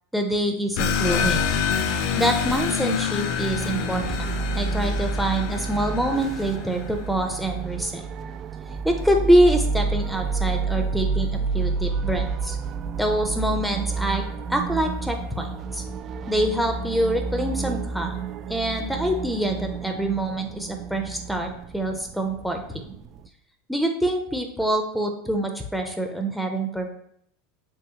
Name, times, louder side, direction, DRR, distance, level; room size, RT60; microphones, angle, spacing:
voice 1, 0.1-1.5 2.2-4.3 4.5-8.0 8.8-12.6 13.0-15.8 16.3-18.1 18.5-22.9 23.7-26.9, right 1 dB, ahead, 4 dB, 0.6 m, -25 dB
sound 1, 0.8-7.0, left 6 dB, 60° left, 0.6 m, -27 dB
sound 2, 3.5-23.3, right 4 dB, 40° right, 0.3 m, -30 dB
4.8 x 3.5 x 2.9 m, 0.71 s
hypercardioid pair, 100°, 0 cm